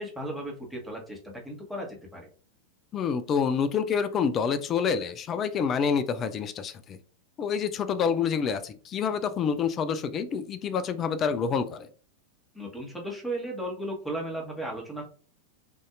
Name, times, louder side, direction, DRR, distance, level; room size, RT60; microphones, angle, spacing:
voice 1, 0.0-2.3 12.5-15.0, right 1 dB, 5° left, 1 dB, 1.3 m, -35 dB
voice 2, 2.9-7.0 7.4-11.9, left 6 dB, 30° left, 12 dB, 0.4 m, -27 dB
6.2 x 2.7 x 2.5 m, 0.42 s
figure-of-eight pair, 90°, 0 cm